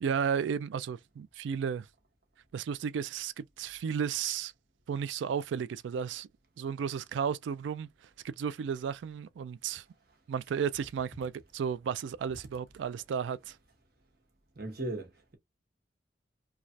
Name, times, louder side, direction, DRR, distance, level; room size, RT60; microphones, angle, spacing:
voice 1, 0.0-1.9 2.5-4.5 4.9-6.3 6.6-7.9 8.2-9.8 10.3-13.6, right 7 dB, 80° right, 0.3 m, -33 dB
voice 2, 14.5-15.4, right 2 dB, 55° right, 1.0 m, -37 dB
3.2 x 2.4 x 2.5 m
head